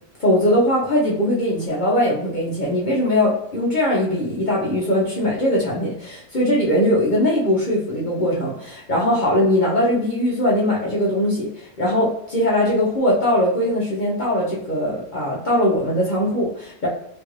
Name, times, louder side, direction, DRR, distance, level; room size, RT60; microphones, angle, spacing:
voice 1, 0.2-16.9, left 1 dB, 45° left, -5 dB, 0.6 m, -20 dB
3.0 x 2.4 x 3.0 m, 0.74 s
omnidirectional pair, 1.5 m